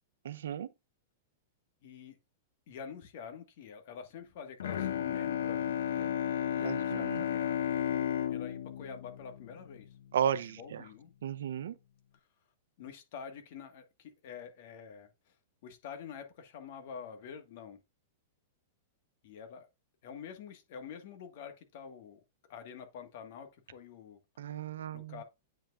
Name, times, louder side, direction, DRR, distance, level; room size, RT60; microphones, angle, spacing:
voice 1, 0.2-0.7 6.6-7.2 10.1-10.8 11.2-11.7 24.4-25.1, right 9 dB, 85° right, 0.6 m, -34 dB
voice 2, 1.8-2.2 2.7-6.2 6.5-7.6 8.3-10.0 10.3-11.1 12.1-12.2 12.8-15.3 15.6-17.8 19.2-19.7 20.0-22.2 22.5-24.2 24.9-25.2, left 7 dB, 45° left, 1.5 m, -47 dB
Bowed string instrument, 4.6-10.2, left 10 dB, 85° left, 0.8 m, -33 dB
8.7 x 5.6 x 2.4 m
supercardioid pair, 170°, 0 cm